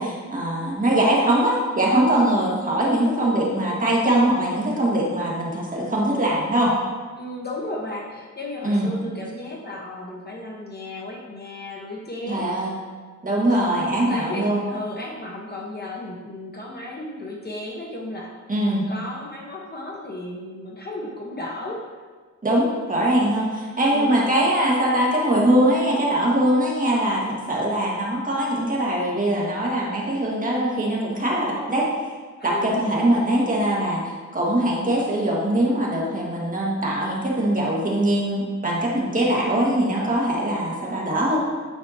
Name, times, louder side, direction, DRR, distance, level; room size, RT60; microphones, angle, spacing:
voice 1, 0.0-6.7 8.6-8.9 12.3-12.7 13.2-14.6 18.5-18.8 22.4-31.9 32.4-41.4, right 1 dB, 25° right, -4 dB, 1.6 m, -22 dB
voice 2, 7.2-12.6 13.5-18.3 18.9-21.8 23.9-24.3 32.4-32.8, left 1 dB, 30° left, -2 dB, 1.1 m, -34 dB
9.6 x 5.8 x 2.8 m, 1.5 s
wide cardioid pair, 120°, 31 cm